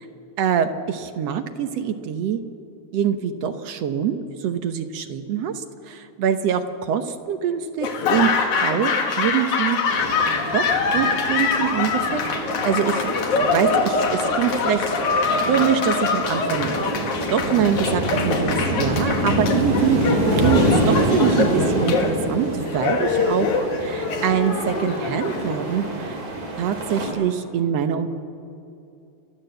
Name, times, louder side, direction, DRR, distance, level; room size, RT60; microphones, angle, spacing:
voice 1, 0.4-2.4 2.9-8.3 8.6-9.8 10.5-10.6 10.9-12.2 12.6-13.0 13.4-14.9 15.1-16.7 17.3-18.5 18.7-26.2 26.6-28.1, right 8 dB, 65° right, 8 dB, 1.9 m, -24 dB
Laughter / Applause, 7.8-25.9, left 4 dB, 85° left, 3.1 m, -24 dB
sound 1, 9.9-27.1, right 1 dB, 85° right, 5.0 m, -26 dB
29.5 x 12.5 x 7.9 m, 2.7 s
omnidirectional pair, 3.3 m